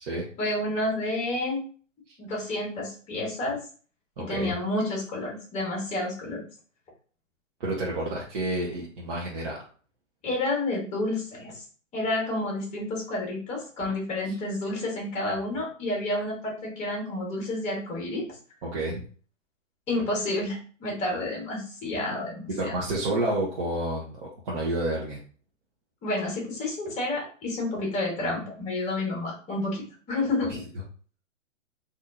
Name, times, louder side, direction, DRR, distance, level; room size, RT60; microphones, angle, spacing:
voice 1, 0.4-1.6 2.2-3.6 4.2-6.4 10.2-11.6 11.9-18.2 19.9-22.8 26.0-30.6, left 2 dB, 15° left, -1 dB, 1.3 m, -30 dB
voice 2, 4.2-4.5 7.6-9.6 18.6-19.0 22.5-25.2, right 1 dB, 40° right, -4 dB, 0.9 m, -29 dB
4.0 x 2.7 x 2.7 m, 0.41 s
hypercardioid pair, 130°, 39 cm